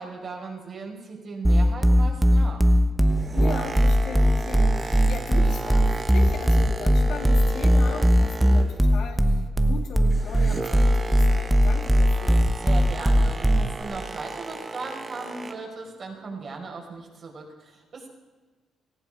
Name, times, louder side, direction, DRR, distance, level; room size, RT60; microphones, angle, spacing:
voice 1, 0.0-2.6 12.6-18.1, right 3 dB, 50° right, 0 dB, 5.1 m, -37 dB
sound 1, 1.4-13.8, equal, 5° right, 1.0 m, -19 dB
Boat Water vehicle, 2.9-9.0 9.3-15.8 16.4-16.5, right 3 dB, 30° right, 1.2 m, -36 dB
voice 2, 3.3-12.5, left 5 dB, 75° left, 2 dB, 2.7 m, -38 dB
18.0 x 15.0 x 5.1 m, 1.3 s
cardioid pair, 90°, 0 cm